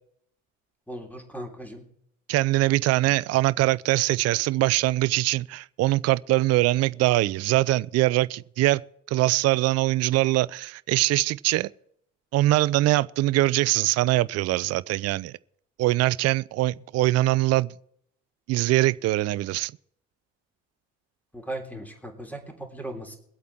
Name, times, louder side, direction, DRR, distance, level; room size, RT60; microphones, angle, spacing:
voice 1, 0.9-1.9 21.3-23.2, right 1 dB, 5° left, 3.3 m, -37 dB
voice 2, 2.3-8.8 9.1-11.7 12.3-15.3 15.8-17.7 18.5-19.7, right 17 dB, 45° right, 0.4 m, -22 dB
22.0 x 8.3 x 4.4 m
figure-of-eight pair, 50°, 38 cm